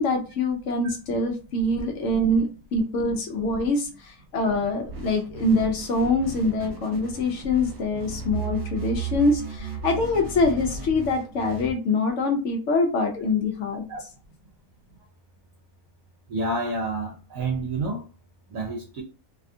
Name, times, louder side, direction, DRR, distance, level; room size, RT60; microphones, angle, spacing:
voice 1, 0.0-13.9, left 2 dB, 65° left, 0.8 m, -24 dB
sound 1, 4.9-11.7, right 5 dB, 50° right, 1.2 m, -35 dB
voice 2, 16.3-18.1 18.5-19.0, right 2 dB, 70° right, 0.9 m, -29 dB
2.7 x 2.3 x 2.5 m
omnidirectional pair, 1.6 m